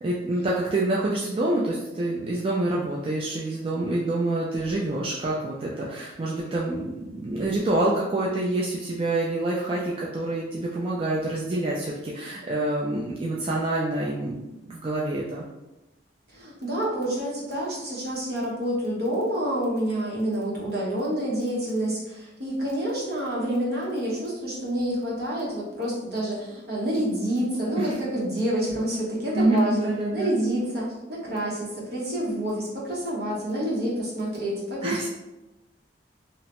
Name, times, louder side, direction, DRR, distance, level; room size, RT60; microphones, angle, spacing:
voice 1, 0.0-15.4 27.8-27.9 29.3-30.3 34.8-35.1, right 2 dB, 30° right, -5 dB, 0.3 m, -27 dB
voice 2, 16.3-35.1, right 1 dB, 60° right, -5 dB, 0.9 m, -28 dB
2.8 x 2.1 x 2.8 m, 1.0 s
head